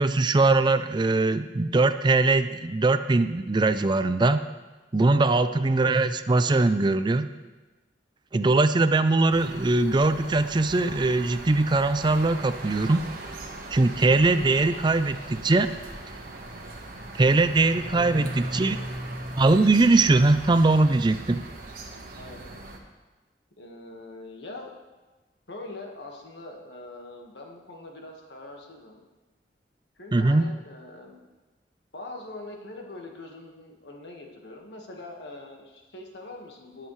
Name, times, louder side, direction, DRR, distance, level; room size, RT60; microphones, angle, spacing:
voice 1, 0.0-4.4 4.9-7.3 8.3-13.0 13.7-15.7 17.2-18.8 19.4-21.4 30.1-30.5, right 2 dB, 25° right, 11 dB, 0.4 m, -21 dB
voice 2, 5.1-5.5 14.4-14.8 17.9-18.8 22.1-22.4 23.6-24.7 25.5-29.1 30.0-31.2 31.9-36.9, left 2 dB, 70° left, 1 dB, 1.5 m, -43 dB
sound 1, 9.3-22.8, right 1 dB, 55° right, 1.3 m, -39 dB
18.5 x 7.5 x 3.2 m, 1.2 s
head